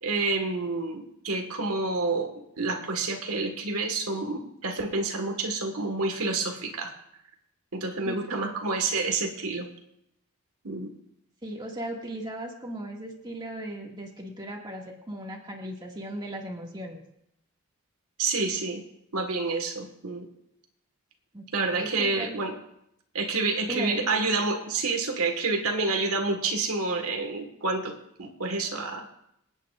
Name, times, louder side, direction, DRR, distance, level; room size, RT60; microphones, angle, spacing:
voice 1, 0.0-6.9 7.7-9.7 10.6-10.9 18.2-18.8 19.1-20.3 21.5-22.5 23.1-29.1, right 3 dB, 90° right, 3 dB, 1.6 m, -28 dB
voice 2, 8.0-8.6 11.4-17.0 21.3-22.4 23.6-24.1, right 1 dB, 20° right, -1 dB, 2.0 m, -37 dB
26.5 x 9.0 x 2.5 m, 0.77 s
head